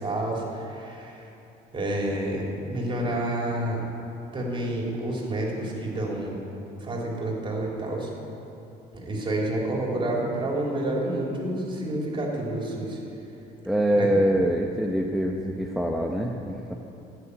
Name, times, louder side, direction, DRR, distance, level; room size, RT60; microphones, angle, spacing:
voice 1, 0.0-1.2 1.7-3.8 4.3-6.4 6.8-8.1 8.9-13.0 13.9-14.1, right 1 dB, 30° right, -2 dB, 3.5 m, -29 dB
voice 2, 13.7-16.7, equal, ahead, 0 dB, 0.8 m, -24 dB
15.0 x 6.8 x 9.8 m, 2.8 s
cardioid pair, 110°, 17 cm